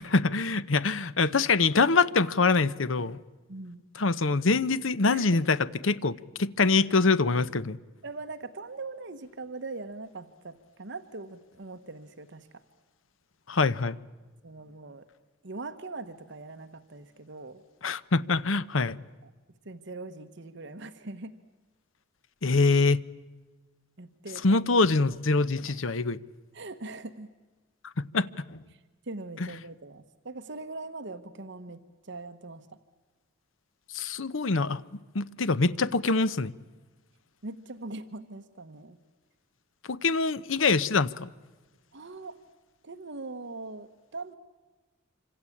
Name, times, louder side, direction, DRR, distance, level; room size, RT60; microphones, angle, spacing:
voice 1, 0.0-3.2 4.0-5.6 5.8-7.8 13.5-14.0 17.8-19.0 22.4-23.0 24.4-26.2 28.0-28.6 33.9-34.8 35.1-36.5 39.9-41.3, left 3 dB, 75° left, 0.9 m, -24 dB
voice 2, 3.5-3.8 5.1-5.4 8.0-12.6 14.4-15.1 15.4-17.6 19.2-19.3 19.6-21.3 24.0-24.6 25.1-25.2 25.6-25.8 26.5-27.3 28.7-28.8 29.1-32.7 37.4-39.0 41.9-42.4 42.8-44.4, right 3 dB, 65° right, 1.2 m, -41 dB
26.5 x 25.5 x 8.6 m
head